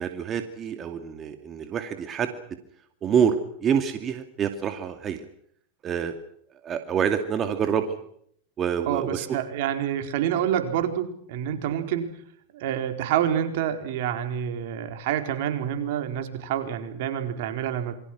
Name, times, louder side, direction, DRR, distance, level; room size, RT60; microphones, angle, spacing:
voice 1, 0.0-2.3 3.0-5.3 5.8-6.2 6.6-8.0 8.6-9.3, right 7 dB, 30° right, 7 dB, 2.5 m, -26 dB
voice 2, 8.9-12.1 12.5-17.9, right 10 dB, 65° right, 7 dB, 4.3 m, -27 dB
27.5 x 23.0 x 6.3 m, 0.67 s
hypercardioid pair, 110°, 0 cm